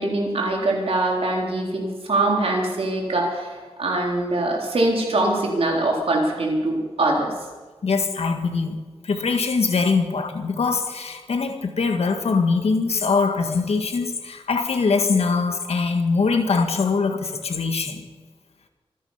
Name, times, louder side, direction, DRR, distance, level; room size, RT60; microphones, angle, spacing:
voice 1, 0.0-7.3, right 2 dB, 70° right, -1 dB, 3.8 m, -23 dB
voice 2, 7.8-8.8 9.0-18.1, left 4 dB, 80° left, 6 dB, 1.7 m, -22 dB
25.5 x 10.0 x 5.7 m, 1.4 s
wide cardioid pair, 115°, 10 cm